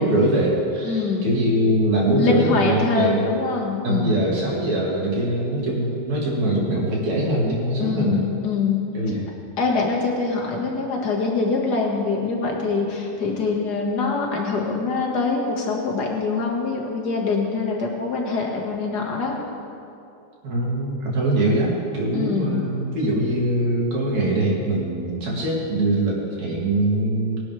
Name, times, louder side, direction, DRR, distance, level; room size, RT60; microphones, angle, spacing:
voice 1, 0.0-3.2 3.8-8.2 8.9-9.3 20.4-27.4, right 1 dB, 65° right, -4 dB, 4.2 m, -22 dB
voice 2, 0.8-1.3 2.2-4.2 7.8-8.9 9.6-19.4 22.1-22.6, left 4 dB, 35° left, -1 dB, 2.1 m, -24 dB
22.5 x 11.5 x 3.5 m, 2.6 s
omnidirectional pair, 3.5 m